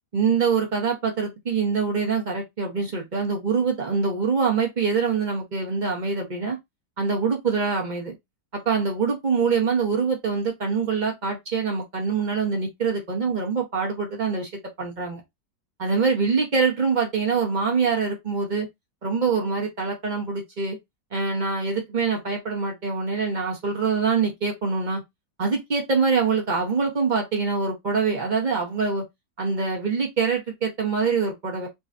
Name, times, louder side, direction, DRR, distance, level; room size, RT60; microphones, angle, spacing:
voice 1, 0.1-6.6 7.0-8.2 8.5-14.5 14.8-15.2 15.8-18.7 19.0-20.8 21.1-25.0 25.4-29.0 29.4-31.7, right 5 dB, 35° right, 0.9 m, -24 dB
5.0 x 2.3 x 2.6 m
omnidirectional pair, 1.9 m